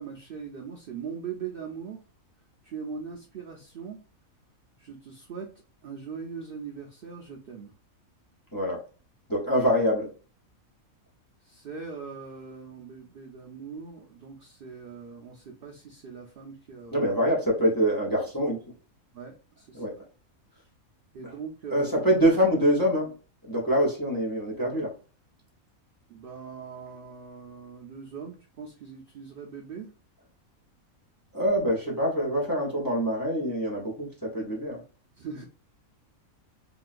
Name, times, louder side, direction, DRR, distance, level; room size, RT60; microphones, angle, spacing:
voice 1, 0.0-2.0 2.6-4.0 4.8-5.5 5.8-7.7 11.4-17.0 19.1-19.8 20.6-20.7 21.1-22.2 26.1-29.9 35.2-35.4, right 6 dB, 65° right, 0.6 m, -41 dB
voice 2, 9.3-10.1 16.9-18.6 19.7-19.9 21.2-21.3 21.7-23.1 23.4-24.9 31.3-34.8, equal, 20° left, 0.7 m, -25 dB
3.6 x 2.3 x 2.4 m
omnidirectional pair, 1.5 m